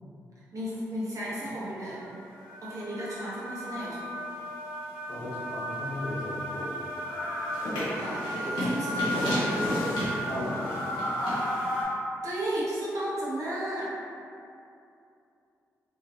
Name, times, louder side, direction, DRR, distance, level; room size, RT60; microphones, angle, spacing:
voice 1, 0.5-2.0 2.6-4.1 8.0-9.7 12.2-13.9, right 1 dB, 50° right, -8 dB, 1.1 m, -34 dB
sound 1, 1.5-1.6 2.0-11.8, equal, 90° left, 0.8 m, -32 dB
voice 2, 5.1-6.8 10.3-10.7, left 1 dB, 65° left, -10 dB, 1.2 m, -36 dB
2.8 x 2.8 x 2.6 m, 2.6 s
supercardioid pair, 40°, 7 cm